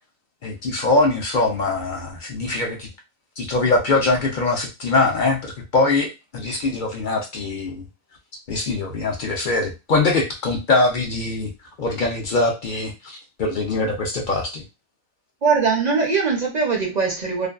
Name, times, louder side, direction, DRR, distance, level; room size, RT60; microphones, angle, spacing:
voice 1, 0.4-2.9 3.4-7.8 8.5-11.5 11.8-14.6, left 3 dB, 60° left, 0.5 m, -22 dB
voice 2, 15.4-17.5, right 5 dB, 50° right, 0.5 m, -21 dB
2.5 x 2.2 x 2.3 m
omnidirectional pair, 1.3 m